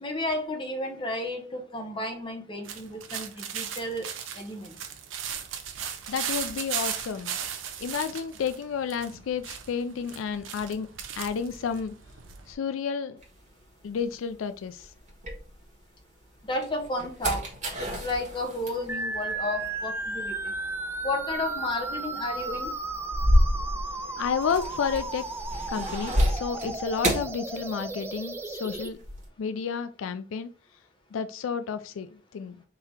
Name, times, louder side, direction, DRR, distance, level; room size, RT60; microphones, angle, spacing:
voice 1, 0.0-4.1 4.3-4.8 16.5-17.5 17.8-20.5 21.0-22.7, left 1 dB, 25° left, 0.8 m, -32 dB
sound 1, 2.7-12.5, right 8 dB, 75° right, 0.7 m, -37 dB
voice 2, 6.1-7.4 7.8-10.9 11.2-11.9 12.5-13.2 13.8-14.9 24.2-25.2 25.7-29.0 29.4-30.5 31.1-32.6, left 6 dB, 85° left, 0.4 m, -31 dB
sound 2, 13.2-16.0 16.4-28.2 28.5-29.3, equal, 40° right, 1.5 m, -31 dB
sound 3, 18.9-28.9, right 2 dB, 10° right, 0.3 m, -34 dB
3.8 x 2.8 x 4.3 m
head